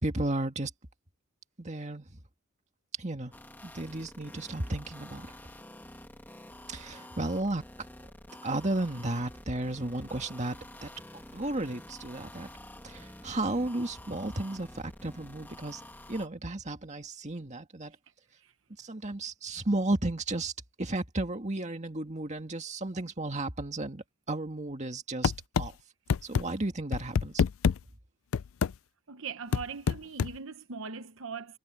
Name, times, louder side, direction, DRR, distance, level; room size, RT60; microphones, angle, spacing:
voice 1, 0.0-0.7 1.6-2.2 3.0-3.3 3.6-5.3 6.7-7.7 8.4-12.5 12.8-15.8 16.1-18.0 18.8-20.5 20.8-25.3 25.6-25.7 26.2-27.4, right 2 dB, 30° right, 2.0 m, -33 dB
sound 1, 3.3-16.3, left 1 dB, 10° left, 1.6 m, -49 dB
sound 2, 25.2-25.7 26.1-26.4 26.9-27.8 28.3-28.7 29.5-30.3, left 6 dB, 65° left, 0.4 m, -26 dB
voice 2, 29.1-31.6, right 5 dB, 60° right, 0.9 m, -40 dB
head